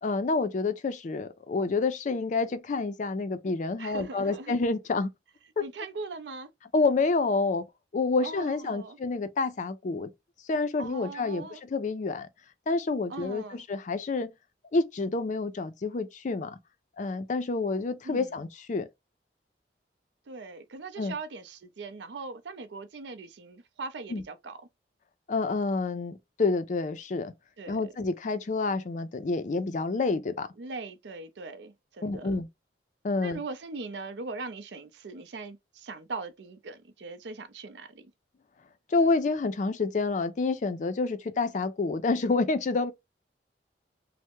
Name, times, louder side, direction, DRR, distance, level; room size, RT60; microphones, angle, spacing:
voice 1, 0.0-5.1 6.7-7.6 7.9-10.1 10.5-12.3 12.7-14.3 14.7-16.6 17.0-18.9 21.0-21.1 24.1-24.2 25.3-27.3 27.7-30.5 32.0-32.5 33.0-33.4 38.9-42.9, left 3 dB, 45° left, 0.4 m, -28 dB
voice 2, 3.8-4.6 5.6-6.5 8.2-9.0 10.8-11.6 13.1-13.6 18.0-18.3 20.3-24.6 27.6-27.8 30.6-32.4 33.2-38.1, right 3 dB, 75° right, 0.5 m, -40 dB
3.3 x 2.0 x 2.9 m
head